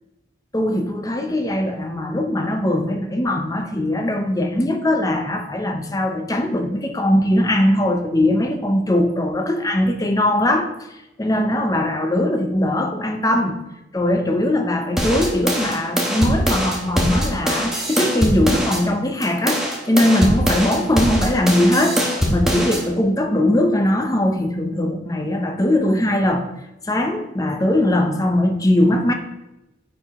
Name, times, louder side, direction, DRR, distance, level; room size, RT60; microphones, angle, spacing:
voice 1, 0.5-10.7 11.2-13.6 13.9-22.0 22.3-26.5 26.9-29.1, left 1 dB, 20° left, 0.7 m, -20 dB
sound 1, 15.0-18.8 19.2-22.8, equal, 5° right, 1.2 m, -22 dB
9.3 x 4.9 x 3.6 m
head